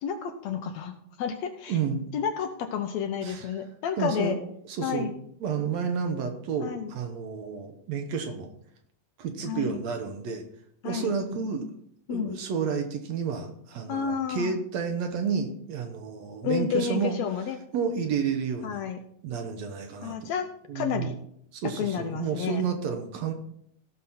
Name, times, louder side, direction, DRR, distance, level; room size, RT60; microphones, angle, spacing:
voice 1, 0.0-0.9 1.2-1.8 2.1-4.4 4.8-5.1 6.6-6.9 9.5-9.8 10.8-11.1 12.1-12.4 13.9-14.5 16.4-17.6 18.6-19.0 20.0-20.5 20.8-21.1 21.8-22.6, left 7 dB, 70° left, 6 dB, 1.8 m, -30 dB
voice 2, 1.7-2.0 3.2-3.5 4.0-4.4 4.7-5.1 5.4-8.5 9.2-10.4 10.8-11.7 12.1-17.2 17.7-18.8 19.2-20.3 20.7-21.1 21.5-23.3, right 6 dB, 65° right, 5 dB, 2.1 m, -30 dB
16.5 x 6.3 x 4.2 m, 0.68 s
omnidirectional pair, 3.6 m